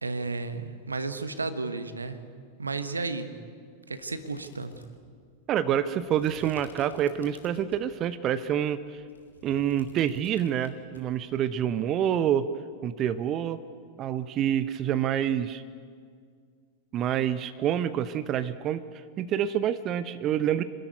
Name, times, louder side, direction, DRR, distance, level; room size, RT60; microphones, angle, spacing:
voice 1, 0.0-2.2 2.6-3.3 3.9-4.8, right 3 dB, 80° right, 10 dB, 1.3 m, -33 dB
sound 1, 4.0-8.0 8.4-11.0, left 4 dB, 75° left, 2.6 m, -52 dB
voice 2, 5.5-9.0 9.4-12.5 12.8-13.6 14.0-15.6 16.9-18.8 19.2-20.6, right 10 dB, 35° right, 13 dB, 0.7 m, -27 dB
26.0 x 13.0 x 9.5 m, 2.1 s
figure-of-eight pair, 90°, 0 cm